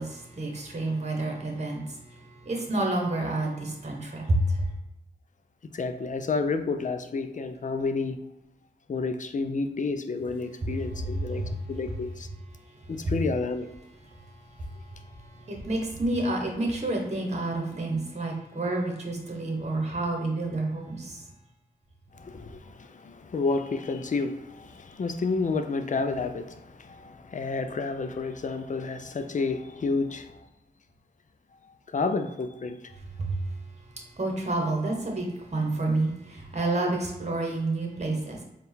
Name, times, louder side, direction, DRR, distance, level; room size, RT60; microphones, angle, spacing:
voice 1, 0.0-4.6 10.6-10.7 11.3-11.6 13.0-13.1 14.6-21.2 33.2-33.5 34.2-38.4, right 2 dB, 40° right, 1 dB, 1.2 m, -29 dB
voice 2, 5.7-8.2 8.9-12.3 12.9-13.7 22.1-30.5 31.9-32.9, left 4 dB, 45° left, 8 dB, 0.5 m, -30 dB
4.3 x 2.4 x 3.5 m, 0.90 s
cardioid pair, 45°, 18 cm